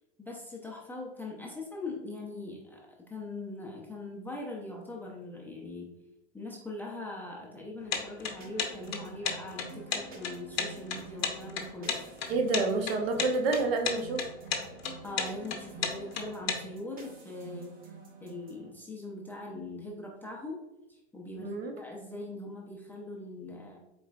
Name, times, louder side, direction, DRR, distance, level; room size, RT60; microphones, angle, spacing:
voice 1, 0.2-5.9 6.3-12.0 15.0-17.7 18.2-20.6 20.9-23.8, left 2 dB, 5° left, -2 dB, 0.5 m, -41 dB
sound 1, 7.9-16.6, left 6 dB, 60° left, 0.8 m, -32 dB
sound 2, 8.4-18.7, right 5 dB, 25° right, 1.0 m, -49 dB
voice 2, 12.3-14.2 21.4-21.7, right 3 dB, 55° right, 3 dB, 0.8 m, -28 dB
4.1 x 3.8 x 2.3 m, 0.93 s
figure-of-eight pair, 90°, 35 cm